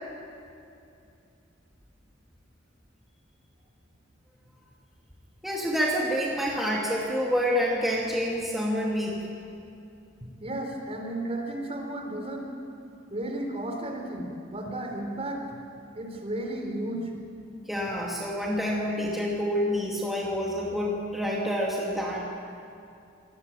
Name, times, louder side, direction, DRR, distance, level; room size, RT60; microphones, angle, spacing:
voice 1, 5.4-9.2 17.7-22.2, equal, ahead, -4 dB, 2.5 m, -28 dB
voice 2, 10.4-12.5 13.1-15.4 15.9-17.1, right 1 dB, 30° right, 3 dB, 3.9 m, -33 dB
26.5 x 19.0 x 9.1 m, 2.6 s
head